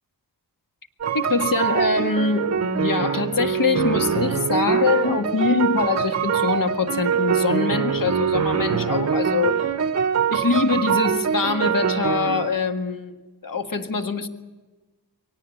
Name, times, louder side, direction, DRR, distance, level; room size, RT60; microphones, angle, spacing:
sound 1, 1.0-12.6, right 7 dB, 40° right, 0.8 m, -23 dB
voice 1, 1.1-9.7 10.3-13.1 13.4-14.3, left 4 dB, 55° left, 5 dB, 1.8 m, -24 dB
24.5 x 18.0 x 8.6 m, 1.2 s
wide cardioid pair, 85°, 39 cm